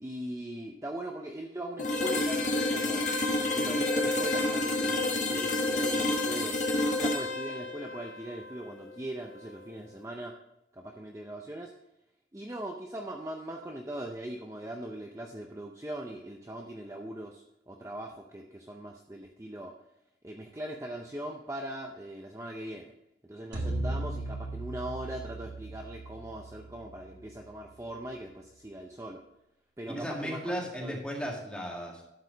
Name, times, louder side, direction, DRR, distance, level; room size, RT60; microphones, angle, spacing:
voice 1, 0.0-3.1 3.4-6.6 6.9-10.4 10.7-11.7 12.3-19.8 20.2-22.9 23.2-29.2 29.8-30.5 30.8-31.0, right 1 dB, 15° right, 1 dB, 0.6 m, -40 dB
sound 1, 1.8-9.6, left 2 dB, 45° left, 1.2 m, -30 dB
sound 2, 23.5-27.9, right 2 dB, 70° right, 1.6 m, -37 dB
voice 2, 29.9-32.0, equal, 5° left, -2 dB, 1.8 m, -35 dB
12.0 x 4.8 x 5.1 m, 0.88 s
head